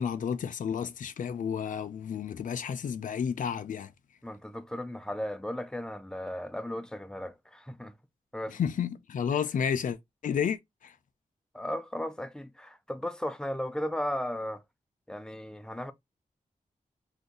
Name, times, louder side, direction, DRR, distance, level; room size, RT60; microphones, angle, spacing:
voice 1, 0.0-3.9 8.6-10.0 10.2-10.9, left 7 dB, 65° left, 0.4 m, -31 dB
voice 2, 4.2-7.9 8.3-8.6 11.5-14.6 15.1-15.9, left 1 dB, 5° left, 0.4 m, -35 dB
2.6 x 2.3 x 3.7 m
wide cardioid pair, 85°, 14 cm